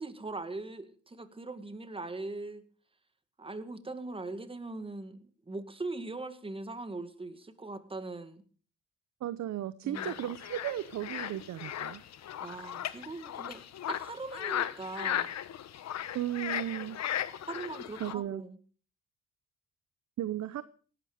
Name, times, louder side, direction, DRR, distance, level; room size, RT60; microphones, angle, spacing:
voice 1, 0.0-2.6 3.4-5.2 5.5-8.4 9.8-10.2 12.4-13.6 13.9-15.3 17.5-18.6, right 2 dB, 20° right, 10 dB, 1.9 m, -40 dB
voice 2, 9.2-12.0 16.1-17.0 18.0-18.4 20.2-20.6, right 12 dB, 65° right, 15 dB, 0.8 m, -35 dB
sound 1, 9.9-18.1, left 11 dB, 60° left, 1.0 m, -37 dB
17.5 x 12.0 x 5.1 m, 0.42 s
cardioid pair, 90°, 30 cm